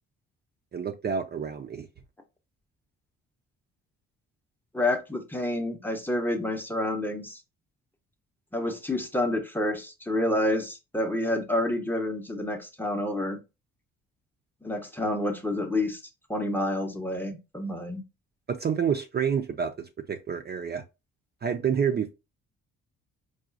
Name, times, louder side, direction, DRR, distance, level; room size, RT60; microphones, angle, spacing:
voice 1, 0.7-1.9 18.5-20.8 21.4-22.1, right 7 dB, 35° right, 0.5 m, -28 dB
voice 2, 4.7-7.4 8.5-13.4 14.6-16.0 16.3-18.0, left 1 dB, 5° left, 0.7 m, -28 dB
4.7 x 2.3 x 2.5 m
cardioid pair, 90°, 30 cm